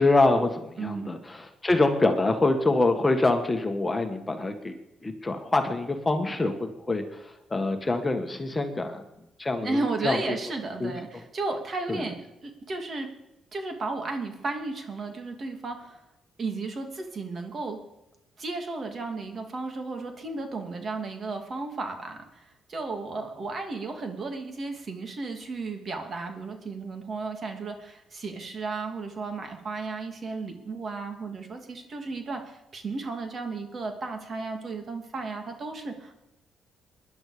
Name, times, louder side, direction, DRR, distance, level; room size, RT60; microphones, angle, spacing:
voice 1, 0.0-4.7 5.0-9.0 9.4-10.2 10.8-10.9 11.9-12.0, left 2 dB, 20° left, 6 dB, 1.6 m, -25 dB
voice 2, 0.8-1.1 9.6-13.1 13.5-16.0 16.4-17.8 18.4-36.1, right 3 dB, 45° right, 4 dB, 2.6 m, -34 dB
20.0 x 11.0 x 5.1 m, 0.90 s
cardioid pair, 90°, 0 cm